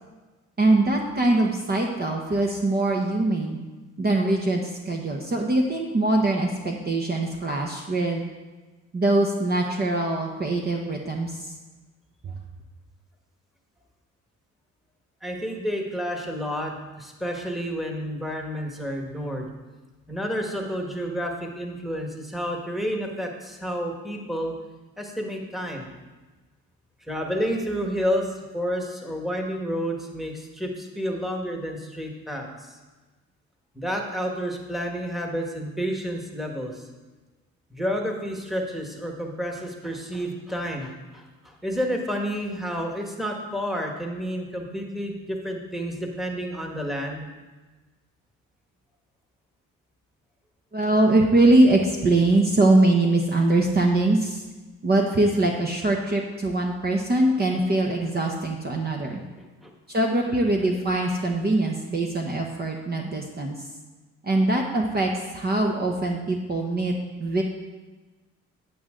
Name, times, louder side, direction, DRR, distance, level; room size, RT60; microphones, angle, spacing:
voice 1, 0.6-3.6 4.0-8.2 8.9-11.5 12.2-12.3 50.7-54.4 54.8-59.2 59.9-63.5 64.2-66.9 67.2-67.4, right 2 dB, 30° right, 1 dB, 1.0 m, -22 dB
voice 2, 15.2-19.5 20.1-24.5 25.0-25.9 27.1-32.7 33.7-36.8 37.7-47.3 59.4-59.7, equal, ahead, 1 dB, 1.5 m, -30 dB
8.6 x 8.4 x 3.8 m, 1.2 s
cardioid pair, 90°, 30 cm